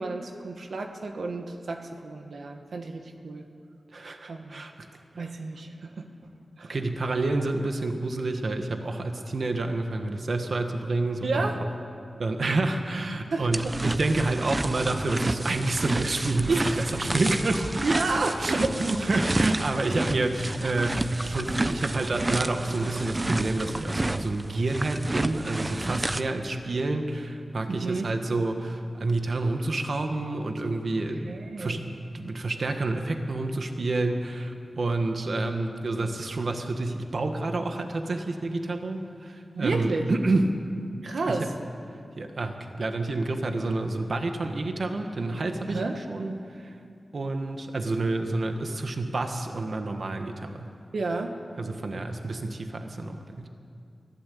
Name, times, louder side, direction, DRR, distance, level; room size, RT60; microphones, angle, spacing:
voice 1, 0.0-3.4 4.3-4.6 5.1-6.1 6.6-6.8 11.2-11.6 13.3-13.7 16.5-16.8 17.8-18.6 27.7-28.1 31.2-31.8 39.5-40.1 41.0-41.5 45.7-46.0 50.9-51.4, right 3 dB, 85° right, 4 dB, 1.6 m, -31 dB
voice 2, 3.9-4.9 5.2-5.3 6.7-11.5 12.2-17.8 18.4-31.3 31.6-40.6 41.3-41.5 42.2-46.7 47.1-50.7 51.6-53.4, right 2 dB, 65° right, 5 dB, 1.6 m, -28 dB
sound 1, 13.5-26.2, right 2 dB, 30° right, 0.8 m, -30 dB
23.5 x 16.5 x 8.6 m, 2.4 s
wide cardioid pair, 80°, 0 cm